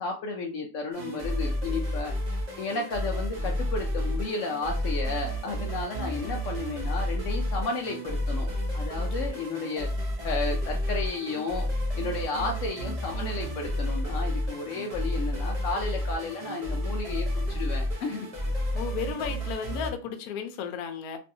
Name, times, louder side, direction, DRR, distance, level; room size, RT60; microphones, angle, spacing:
voice 1, 0.0-2.1 2.6-8.5 8.7-9.9 10.2-11.7 12.0-18.3, left 3 dB, 90° left, 0.6 m, -33 dB
sound 1, 0.9-19.9, left 1 dB, 60° right, 0.3 m, -31 dB
voice 2, 18.7-21.2, left 6 dB, 70° left, 0.9 m, -34 dB
3.1 x 2.6 x 2.6 m
omnidirectional pair, 1.9 m